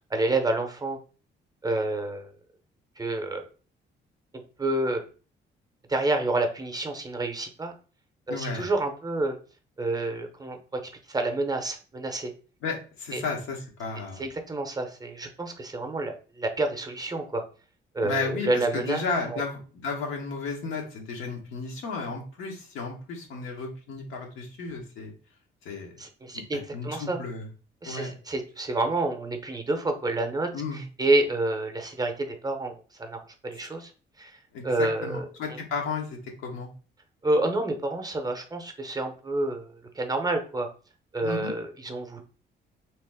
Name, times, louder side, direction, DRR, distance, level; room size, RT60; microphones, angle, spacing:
voice 1, 0.1-1.0 1.6-2.3 3.0-3.5 4.6-5.1 5.9-7.7 8.3-9.4 9.8-10.8 11.1-12.3 13.1-13.2 14.2-17.4 17.9-19.0 19.3-19.4 26.0-27.2 27.8-33.9 34.2-35.6 37.2-40.7 41.1-42.2, right 2 dB, 20° right, 5 dB, 0.6 m, -29 dB
voice 2, 8.3-8.7 12.6-14.2 18.0-25.1 25.6-25.9 26.5-27.5 27.8-28.1 30.5-30.8 34.5-36.7 41.2-41.6, left 4 dB, 90° left, 1 dB, 0.9 m, -33 dB
2.8 x 2.0 x 3.4 m, 0.37 s
cardioid pair, 90°, 20 cm